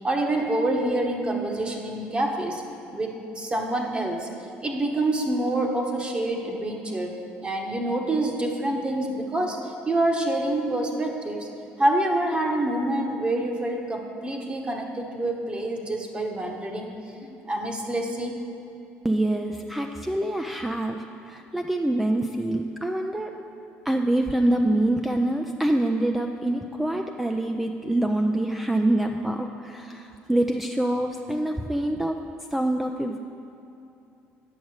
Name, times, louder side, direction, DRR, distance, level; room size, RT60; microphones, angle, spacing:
voice 1, 0.0-2.6 2.9-4.3 4.6-11.5 11.8-16.9 17.2-18.4, right 1 dB, 25° right, 2 dB, 1.2 m, -27 dB
voice 2, 19.0-23.4 23.9-32.2 32.5-33.2, right 1 dB, 5° right, 3 dB, 0.4 m, -25 dB
8.7 x 6.1 x 6.4 m, 2.8 s
supercardioid pair, 95°, 5 cm